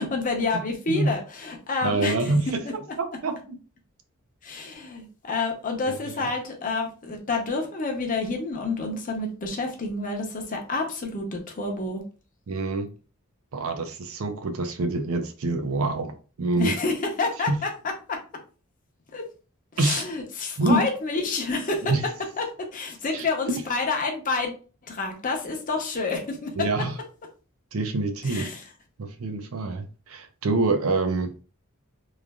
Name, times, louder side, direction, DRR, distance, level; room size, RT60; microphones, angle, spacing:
voice 1, 0.0-2.3 2.6-2.7 4.4-12.0 16.6-17.7 18.1-18.2 19.1-19.2 19.8-21.9 22.4-24.6 24.9-26.7 28.3-28.6, left 3 dB, 40° left, 0.7 m, -28 dB
voice 2, 1.8-2.6 3.0-3.6 5.8-6.3 12.5-12.9 13.5-16.1 16.4-16.7 17.5-17.6 19.8-20.0 20.6-20.9 21.8-22.1 23.1-23.6 26.6-26.9 27.7-28.5 29.0-31.3, right 2 dB, 75° right, 0.5 m, -26 dB
3.2 x 2.4 x 2.2 m
head